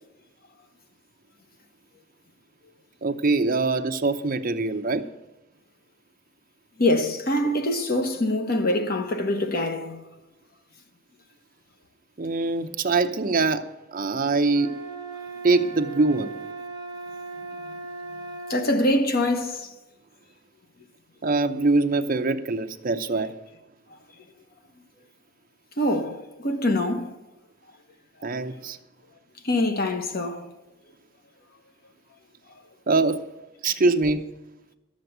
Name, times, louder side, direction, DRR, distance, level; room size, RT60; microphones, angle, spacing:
voice 1, 3.0-5.1 12.2-14.8 15.4-16.3 21.2-23.4 28.2-28.8 32.9-33.2 33.6-34.3, right 3 dB, 45° right, 0.7 m, -23 dB
voice 2, 6.8-10.0 18.5-19.7 25.8-27.1 29.4-30.5, left 1 dB, 50° left, 1.2 m, -24 dB
sound 1, 14.5-18.7, right 4 dB, 20° right, 1.2 m, -37 dB
12.0 x 7.5 x 8.0 m
head